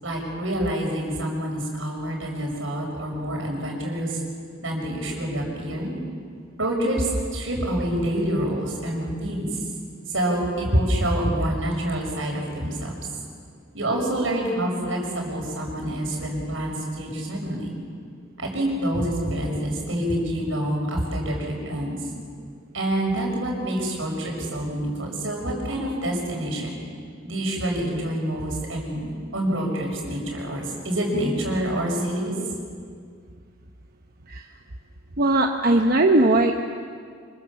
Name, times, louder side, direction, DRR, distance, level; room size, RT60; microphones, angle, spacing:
voice 1, 0.0-4.2 4.6-6.0 6.6-9.5 10.1-13.0 13.7-17.7 18.4-22.0 22.7-26.8 27.2-32.3, right 1 dB, 80° right, 0 dB, 6.2 m, -27 dB
voice 2, 35.2-36.6, right 2 dB, 50° right, 3 dB, 1.1 m, -19 dB
26.0 x 24.5 x 7.2 m, 2.1 s
head